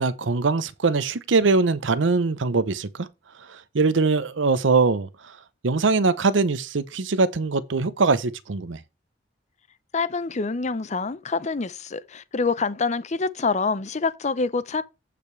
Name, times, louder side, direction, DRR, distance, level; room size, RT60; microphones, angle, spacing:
voice 1, 0.0-3.1 3.5-5.1 5.6-8.8, right 3 dB, 90° right, 0.7 m, -22 dB
voice 2, 9.9-14.8, left 4 dB, 40° left, 0.6 m, -26 dB
15.0 x 5.1 x 3.2 m
head